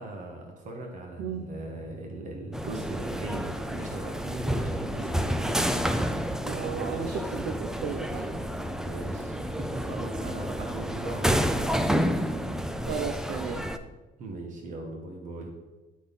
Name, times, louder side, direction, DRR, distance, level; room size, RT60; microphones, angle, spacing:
voice 1, 0.0-5.6 8.8-12.0 14.2-15.5, right 2 dB, 50° right, 1 dB, 1.4 m, -39 dB
voice 2, 1.2-1.5 6.4-8.5 12.8-13.6, right 6 dB, 75° right, 4 dB, 0.8 m, -34 dB
sound 1, 2.5-13.8, equal, 5° right, 0.5 m, -29 dB
11.0 x 4.2 x 5.4 m, 1.1 s
cardioid pair, 110°, 17 cm